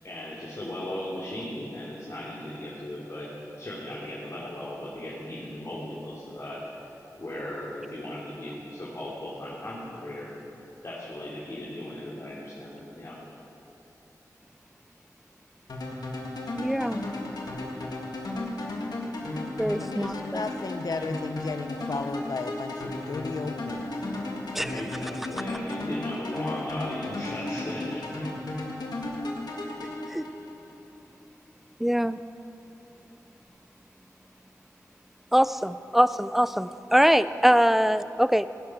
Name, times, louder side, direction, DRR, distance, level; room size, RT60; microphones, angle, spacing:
voice 1, 0.0-3.3 3.6-6.8 7.2-10.3 10.8-13.2 24.7-28.3, left 1 dB, 50° left, -8 dB, 2.9 m, -37 dB
sound 1, 15.7-30.8, left 2 dB, 90° left, 1.9 m, -34 dB
voice 2, 16.6-17.0 19.6-20.4 24.5-24.7 30.1-30.2 31.8-32.2 35.3-38.5, equal, 5° right, 14 dB, 0.5 m, -23 dB
voice 3, 19.8-23.9, left 4 dB, 70° left, 9 dB, 0.7 m, -34 dB
17.0 x 11.5 x 6.0 m, 3.0 s
wide cardioid pair, 60°, 7 cm